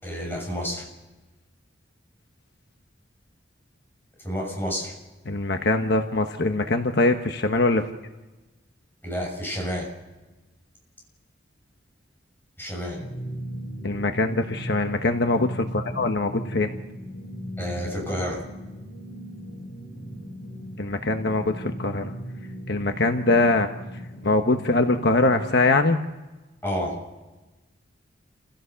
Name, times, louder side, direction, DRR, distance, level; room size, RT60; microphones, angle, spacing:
voice 1, 0.0-0.9 4.2-4.9 9.0-9.9 12.6-13.0 17.6-18.4 26.6-27.0, equal, 10° left, -1 dB, 6.7 m, -29 dB
voice 2, 5.3-7.8 13.8-16.7 20.8-22.1 22.7-23.7 24.2-26.0, left 2 dB, 60° left, 6 dB, 1.2 m, -22 dB
sound 1, 12.9-25.5, equal, 85° left, 4.1 m, -37 dB
29.0 x 16.0 x 7.0 m, 1.2 s
head